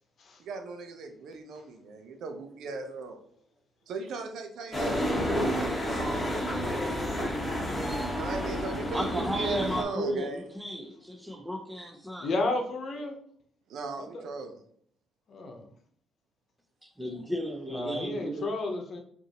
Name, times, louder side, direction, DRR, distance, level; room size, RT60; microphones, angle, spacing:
voice 1, 0.4-3.3 3.9-7.0 8.1-10.4 13.7-14.6, right 3 dB, 75° right, 0.7 m, -38 dB
sound 1, 4.7-9.8, equal, 20° left, 1.1 m, -30 dB
voice 2, 8.9-12.3 16.8-18.5, equal, 10° right, 0.7 m, -34 dB
voice 3, 12.2-13.2 14.0-14.2 15.3-15.6 17.7-19.0, left 2 dB, 55° left, 0.9 m, -32 dB
5.2 x 2.7 x 2.9 m
cardioid pair, 90°, 0 cm